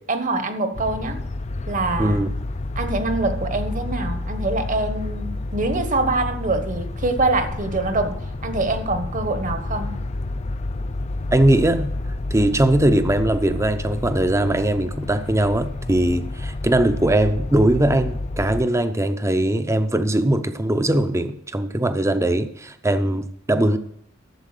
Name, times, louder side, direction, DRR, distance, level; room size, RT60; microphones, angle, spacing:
voice 1, 0.1-1.2 1.7-2.2 2.7-10.0, right 2 dB, 40° right, 1.2 m, -24 dB
sound 1, 0.7-18.6, left 2 dB, 35° left, 0.5 m, -29 dB
voice 2, 11.3-11.9 12.3-23.8, right 1 dB, 15° right, 0.7 m, -20 dB
12.0 x 7.5 x 6.6 m
head